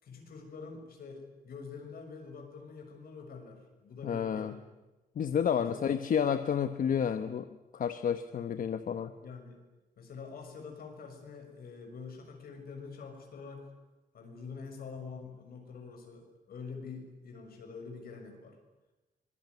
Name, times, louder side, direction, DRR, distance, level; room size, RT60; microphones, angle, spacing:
voice 1, 0.0-4.6 5.6-6.0 9.2-9.6 10.0-13.7 14.1-18.6, left 5 dB, 85° left, 4 dB, 6.4 m, -46 dB
voice 2, 4.0-4.5 5.2-7.5 7.7-9.1, left 8 dB, 65° left, 10 dB, 1.1 m, -30 dB
24.5 x 22.0 x 9.6 m, 1.1 s
wide cardioid pair, 150°, 15 cm